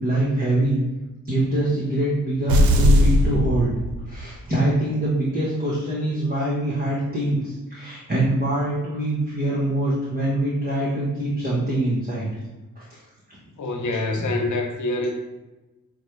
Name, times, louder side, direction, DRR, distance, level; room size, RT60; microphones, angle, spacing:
voice 1, 0.0-0.8 1.3-3.7 4.1-12.3 12.8-12.9, right 1 dB, 25° right, -6 dB, 1.3 m, -24 dB
sound 1, 2.5-4.4, equal, 90° right, 0.5 m, -18 dB
voice 2, 13.6-15.1, left 2 dB, 60° left, 2 dB, 1.0 m, -25 dB
6.0 x 2.3 x 3.3 m, 1.1 s
supercardioid pair, 50°, 34 cm